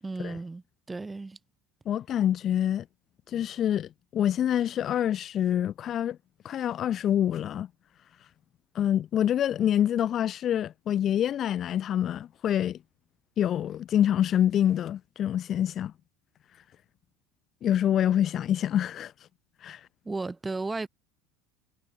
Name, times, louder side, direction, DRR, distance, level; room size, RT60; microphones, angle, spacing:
voice 1, 0.0-1.4 20.1-20.9, right 3 dB, 15° right, 1.8 m, -34 dB
voice 2, 1.8-2.8 3.3-6.2 6.4-7.7 8.7-12.8 13.4-15.9 17.6-19.1 19.6-19.8, left 10 dB, 45° left, 1.4 m, -26 dB
hypercardioid pair, 85°, 0 cm